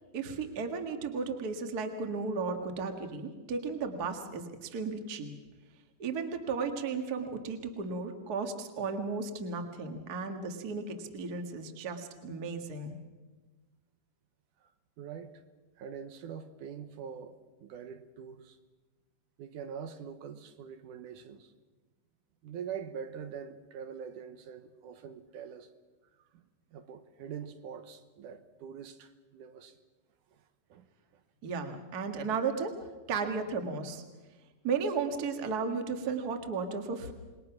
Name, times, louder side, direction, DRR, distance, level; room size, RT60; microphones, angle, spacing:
voice 1, 0.1-5.3 6.0-13.0 31.4-32.7 33.1-34.0 34.6-37.1, right 4 dB, 35° right, 1.7 m, -34 dB
voice 2, 15.0-15.4 15.8-18.6 19.4-21.5 22.4-25.7 26.3-26.4 26.7-29.8 30.3-30.4 30.7-30.9 31.1-31.2, right 7 dB, 80° right, 2.6 m, -44 dB
27.5 x 21.0 x 6.0 m
omnidirectional pair, 3.6 m